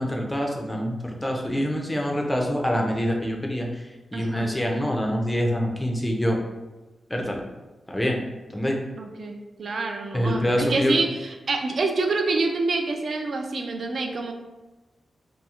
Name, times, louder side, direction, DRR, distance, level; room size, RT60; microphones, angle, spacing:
voice 1, 0.0-3.8 4.1-6.4 7.1-7.4 7.9-8.2 8.5-8.8 10.1-11.1, equal, 10° left, 0 dB, 0.4 m, -25 dB
voice 2, 4.1-4.5 9.0-14.3, right 3 dB, 60° right, 4 dB, 0.3 m, -27 dB
2.8 x 2.3 x 2.3 m, 1.1 s
wide cardioid pair, 110°, 0 cm